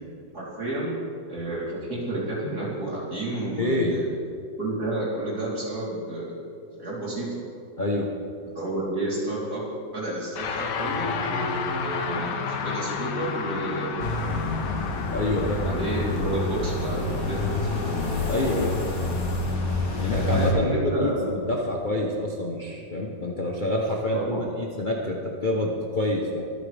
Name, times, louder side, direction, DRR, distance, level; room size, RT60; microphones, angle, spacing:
voice 1, 0.3-1.0 1.3-4.1 4.6-6.4 6.8-7.4 8.5-9.6 9.9-14.8 15.6-17.9 20.0-21.3 24.1-24.4, right 2 dB, 50° right, -7 dB, 4.1 m, -31 dB
voice 2, 3.6-4.0 7.8-8.1 15.1-15.7 18.3-18.8 19.8-26.4, left 1 dB, 35° left, -1 dB, 0.9 m, -27 dB
sound 1, 10.3-19.8, left 5 dB, 65° left, 1.5 m, -32 dB
sound 2, 14.0-20.5, left 2 dB, 50° left, 1.8 m, -27 dB
24.0 x 9.1 x 3.4 m, 2.5 s
omnidirectional pair, 2.1 m